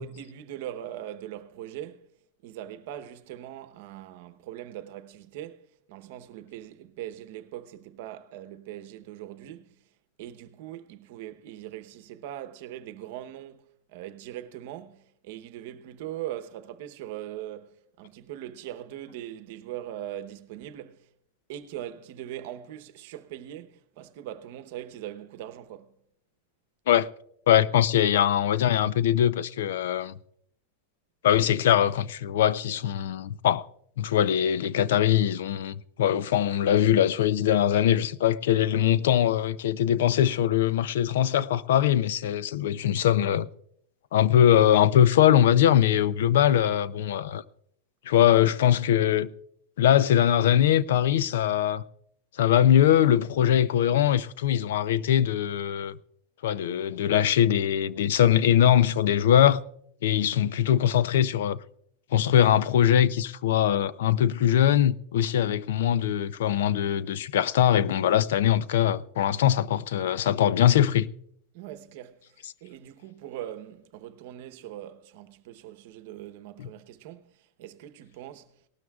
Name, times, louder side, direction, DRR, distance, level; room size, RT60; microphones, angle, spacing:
voice 1, 0.0-2.1 2.4-9.8 10.2-21.1 21.5-26.0 71.5-78.5, right 12 dB, 55° right, 0.9 m, -41 dB
voice 2, 27.5-30.1 31.2-33.7 34.0-43.5 44.1-47.4 48.1-49.3 49.8-51.8 52.4-56.0 56.4-59.6 60.0-61.6 62.1-71.1 76.6-76.7, left 10 dB, 75° left, 0.5 m, -22 dB
18.5 x 12.5 x 2.4 m
supercardioid pair, 160°, 0 cm